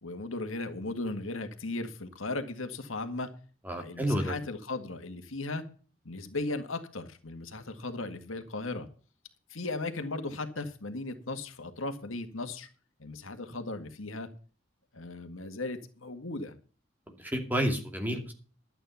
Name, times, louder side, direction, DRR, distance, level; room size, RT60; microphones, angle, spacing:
voice 1, 0.0-3.3 3.7-5.6 6.0-8.9 9.5-12.7 13.0-14.3 14.9-16.6, left 2 dB, 85° left, 7 dB, 1.9 m, -37 dB
voice 2, 3.7-4.3 17.2-18.3, equal, 10° right, 3 dB, 2.5 m, -30 dB
12.0 x 9.0 x 5.7 m, 0.39 s
head